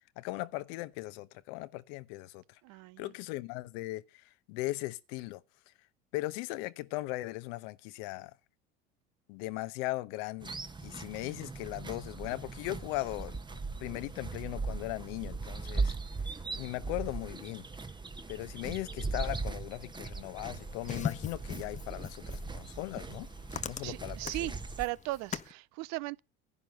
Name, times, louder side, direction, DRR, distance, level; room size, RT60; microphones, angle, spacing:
voice 1, 0.2-2.6 3.0-5.4 6.1-8.3 9.3-10.6 10.8-13.4 13.8-16.0 16.6-17.7 18.3-23.3 23.7-24.5, left 19 dB, 75° left, 0.9 m, -38 dB
voice 2, 2.6-3.1 23.8-24.5 24.8-26.2, right 19 dB, 65° right, 0.6 m, -37 dB
sound 1, 10.4-24.8, right 4 dB, 15° right, 1.1 m, -39 dB
sound 2, 20.4-25.5, left 7 dB, 25° left, 0.7 m, -41 dB
11.0 x 10.0 x 5.3 m
supercardioid pair, 90°, 30 cm